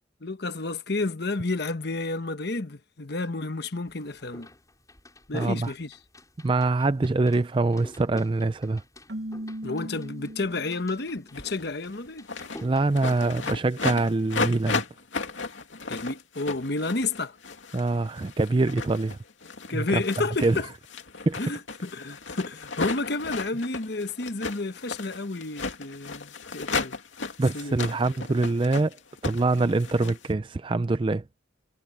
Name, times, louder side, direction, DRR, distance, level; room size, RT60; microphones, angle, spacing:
voice 1, 0.2-4.5 5.3-6.0 9.6-12.3 15.9-17.4 19.7-20.7 21.4-27.0 27.5-27.8, left 3 dB, 55° left, 1.1 m, -31 dB
sound 1, 3.9-13.6, left 1 dB, 20° left, 6.7 m, -48 dB
voice 2, 5.3-5.7 6.4-8.8 12.6-14.8 17.7-19.2 19.7-20.0 20.4-20.6 21.3-21.4 27.4-29.0 29.2-31.2, right 3 dB, 25° right, 0.4 m, -24 dB
Keyboard (musical), 9.1-11.1, right 1 dB, 65° right, 1.1 m, -37 dB
sound 2, 11.3-11.6 11.9-12.6 13.0-30.3, left 4 dB, 80° left, 2.6 m, -34 dB
head